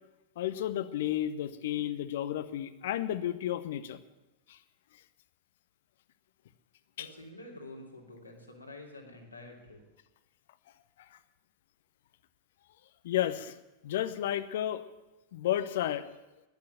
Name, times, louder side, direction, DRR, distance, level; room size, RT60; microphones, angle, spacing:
voice 1, 0.4-4.0 4.5-4.6 7.0-7.1 11.1-11.2 13.0-13.6 13.8-14.8 15.3-16.2, left 12 dB, 55° left, 14 dB, 0.8 m, -32 dB
voice 2, 7.0-9.8, left 2 dB, 80° left, 0 dB, 2.7 m, -48 dB
12.0 x 10.5 x 9.2 m, 1.0 s
figure-of-eight pair, 90°, 0 cm